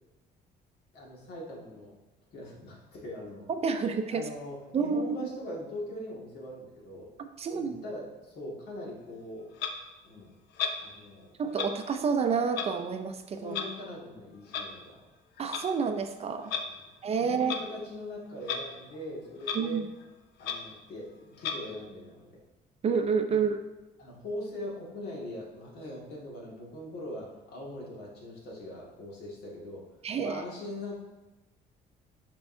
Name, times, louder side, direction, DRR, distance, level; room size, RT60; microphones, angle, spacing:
voice 1, 0.9-1.9 2.3-3.5 4.1-7.1 7.5-9.5 10.0-10.3 10.8-11.3 13.4-15.0 16.7-16.9 17.2-19.8 20.4-22.4 23.3-23.4 24.0-29.8 30.2-30.9, left 1 dB, 70° left, -3 dB, 2.0 m, -41 dB
voice 2, 3.5-4.2 4.7-5.1 7.2-7.8 11.4-13.6 15.4-16.5 17.0-17.5 19.5-19.9 22.8-23.6 30.0-30.4, right 5 dB, 35° right, 7 dB, 0.5 m, -29 dB
Clock, 9.6-9.7 10.6-10.8 11.5-11.7 12.5-12.7 13.5-13.7 14.5-14.7 15.4-15.6 16.4-16.7 17.4-17.7 18.4-18.6 18.9-19.0 19.4-19.6 20.0-20.1 20.4-20.6 21.4-21.6, left 7 dB, 90° left, 0.7 m, -33 dB
6.8 x 5.3 x 2.7 m, 1.1 s
cardioid pair, 110°, 17 cm